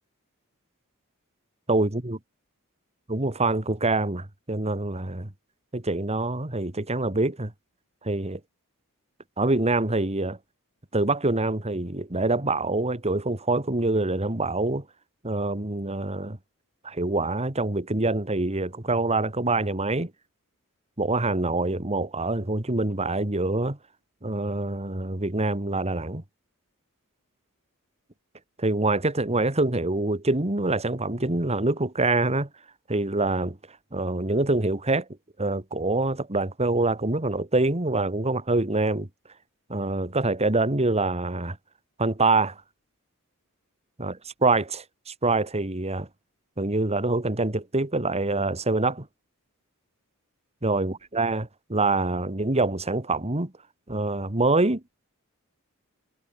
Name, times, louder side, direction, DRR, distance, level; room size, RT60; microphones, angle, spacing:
voice 1, 1.7-2.2 3.1-5.3 5.7-7.5 8.0-8.4 9.4-10.4 10.9-14.8 15.2-16.4 16.8-20.1 21.0-23.8 24.2-26.2 28.6-32.5 32.9-33.6 33.9-35.1 35.4-39.1 39.7-41.6 42.0-42.5 44.0-46.1 46.6-49.1 50.6-53.5 53.9-54.8, right 2 dB, 30° right, 2.1 m, -25 dB
head